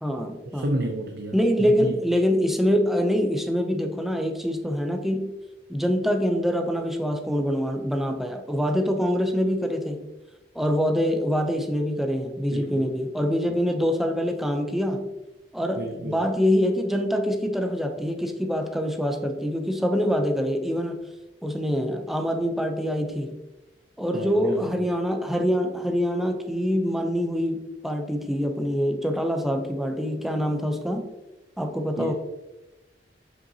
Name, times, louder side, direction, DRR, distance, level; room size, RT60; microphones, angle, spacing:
voice 1, 0.0-0.7 1.3-5.3 5.7-10.1 10.5-15.1 15.5-21.0 21.4-23.4 24.0-31.1 31.6-32.1, equal, ahead, 4 dB, 0.6 m, -25 dB
voice 2, 0.5-2.0 12.5-12.9 15.8-16.3 24.1-24.9 32.0-32.1, right 1 dB, 65° right, 2 dB, 0.7 m, -31 dB
7.5 x 5.6 x 2.8 m, 1.0 s
head